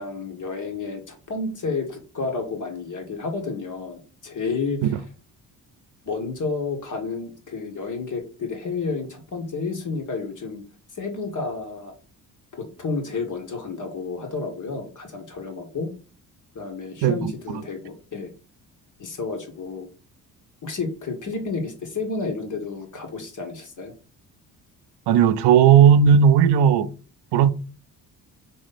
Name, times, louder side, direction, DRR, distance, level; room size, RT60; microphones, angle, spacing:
voice 1, 0.0-4.9 6.0-10.6 10.9-11.9 12.5-15.9 16.5-18.3 19.0-19.9 20.6-23.9, left 4 dB, 45° left, 1.6 m, -31 dB
voice 2, 17.0-17.3 25.1-26.9 27.3-27.5, right 8 dB, 70° right, 0.6 m, -15 dB
4.1 x 3.1 x 4.1 m
supercardioid pair, 60°, 43 cm